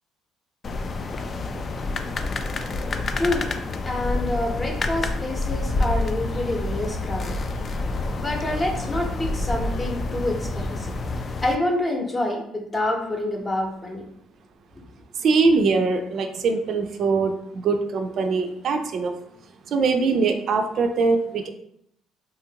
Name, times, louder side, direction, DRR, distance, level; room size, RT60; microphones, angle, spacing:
sound 1, 0.6-11.5, left 3 dB, 40° left, 0.3 m, -29 dB
voice 1, 3.2-3.5 3.9-7.4 8.2-10.9 11.4-14.0, left 1 dB, 25° left, 1 dB, 0.8 m, -27 dB
sound 2, 5.6-11.2, equal, 65° left, 0.9 m, -32 dB
voice 2, 15.2-19.1 19.7-21.5, right 4 dB, 60° right, 5 dB, 0.3 m, -22 dB
2.9 x 2.5 x 2.8 m, 0.74 s
supercardioid pair, 75°, 0 cm